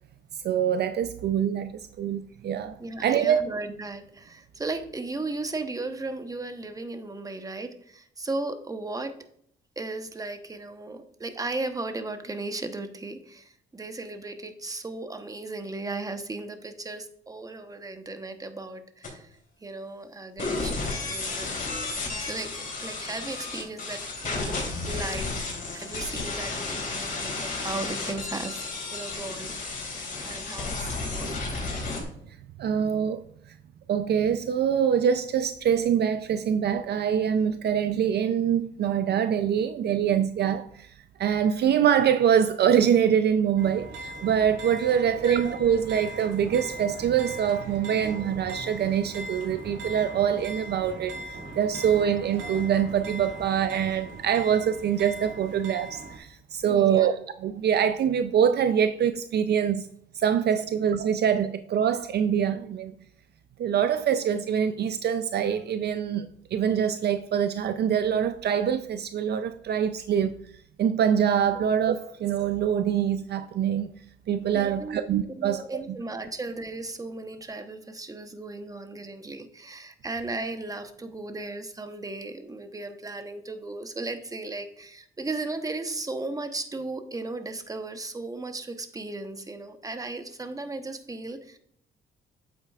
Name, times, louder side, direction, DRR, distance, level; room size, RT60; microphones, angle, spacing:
voice 1, 0.4-3.4 32.0-32.1 32.6-33.6 33.9-40.9 41.2-57.1 57.4-59.9 60.1-62.9 63.6-70.3 70.8-73.9 74.3-75.6 75.9-76.0, right 8 dB, 55° right, 0.5 m, -24 dB
voice 2, 2.8-9.1 9.8-21.6 22.2-25.4 25.7-29.5 30.2-31.5 45.2-45.4 56.7-57.1 74.5-91.6, right 2 dB, 15° right, 0.9 m, -36 dB
sound 1, 19.0-19.1 20.4-32.0, left 3 dB, 45° left, 3.2 m, -32 dB
sound 2, 43.6-56.2, right 2 dB, 85° right, 1.8 m, -39 dB
8.2 x 8.2 x 2.4 m
cardioid pair, 90°, 20 cm